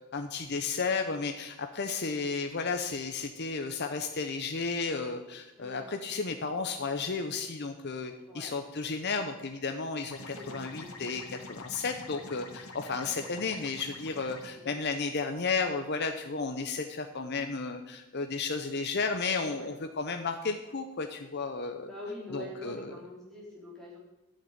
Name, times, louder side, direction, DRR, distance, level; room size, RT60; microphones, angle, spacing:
voice 1, 0.1-21.9 22.3-22.9, left 4 dB, 50° left, 6 dB, 0.7 m, -33 dB
sound 1, 10.1-14.5, left 2 dB, 75° left, 1.5 m, -46 dB
voice 2, 10.3-11.0 12.1-12.3 12.9-13.0 14.5-14.7 19.5-19.7 21.8-24.0, left 1 dB, ahead, -6 dB, 4.1 m, -44 dB
11.5 x 6.7 x 8.6 m, 1.0 s
head